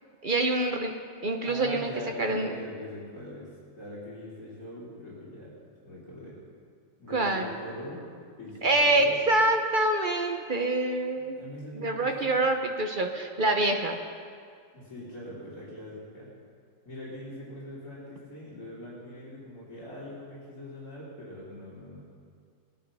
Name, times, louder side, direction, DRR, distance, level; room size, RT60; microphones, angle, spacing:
voice 1, 0.2-0.9 1.2-1.9 2.2-2.6 7.1-7.5 8.6-11.4 11.7-14.0, right 2 dB, 55° right, 3 dB, 0.5 m, -26 dB
voice 2, 1.4-3.5 3.8-5.5 5.8-6.4 7.0-8.0 8.4-9.2 11.1-12.3 14.7-16.3 16.8-22.0, left 1 dB, 45° left, -10 dB, 4.1 m, -42 dB
19.0 x 11.0 x 5.5 m, 2.2 s
omnidirectional pair, 2.1 m